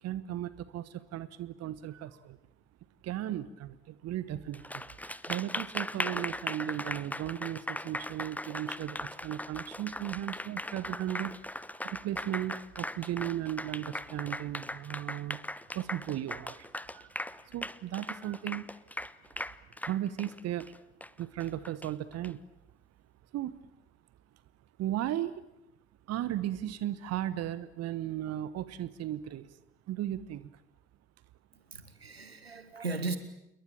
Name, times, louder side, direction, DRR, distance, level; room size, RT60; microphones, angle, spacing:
voice 1, 0.0-2.4 3.0-11.4 11.8-15.4 15.7-17.2 17.5-18.7 19.8-20.7 21.2-22.4 23.3-23.7 24.8-25.4 26.1-29.6 29.9-30.5, right 12 dB, 55° right, 16 dB, 1.3 m, -36 dB
Applause, 4.5-22.3, left 1 dB, 5° left, 1.1 m, -39 dB
voice 2, 31.5-33.2, right 3 dB, 90° right, 11 dB, 1.6 m, -37 dB
28.5 x 22.5 x 8.8 m, 0.85 s
figure-of-eight pair, 45°, 30 cm